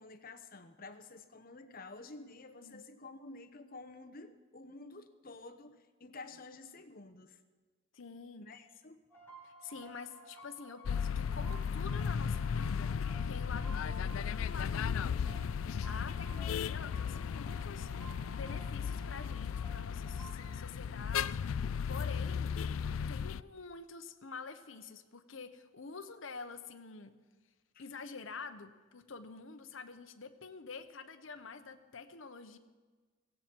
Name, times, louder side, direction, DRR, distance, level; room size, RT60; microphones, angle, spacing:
voice 1, 0.0-7.4 8.4-9.0 27.7-27.8, left 3 dB, 45° left, 9 dB, 1.0 m, -50 dB
voice 2, 7.9-8.5 9.4-22.6 23.1-27.2 27.8-32.6, left 4 dB, 70° left, 7 dB, 0.9 m, -48 dB
sound 1, 9.1-20.6, right 2 dB, 10° left, 3.0 m, -54 dB
sound 2, 10.8-23.4, left 7 dB, 90° left, 0.4 m, -35 dB
17.0 x 16.5 x 4.6 m, 1.4 s
head